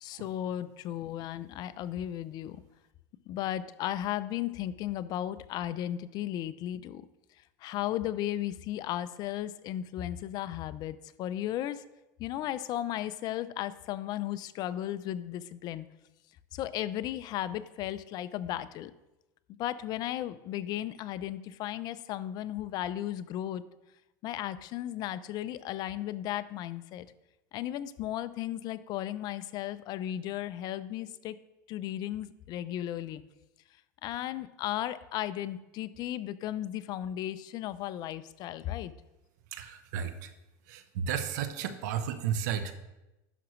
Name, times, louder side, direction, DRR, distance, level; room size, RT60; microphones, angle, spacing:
voice 1, 0.0-2.6 3.3-7.0 7.6-11.8 12.2-15.9 16.5-18.9 19.6-23.6 24.2-27.1 27.5-31.4 31.7-33.2 34.0-38.9, left 12 dB, 45° left, 15 dB, 0.4 m, -35 dB
voice 2, 39.5-40.3 40.7-42.7, right 8 dB, 75° right, 10 dB, 0.8 m, -33 dB
11.0 x 5.9 x 3.1 m, 0.97 s
supercardioid pair, 120°, 9 cm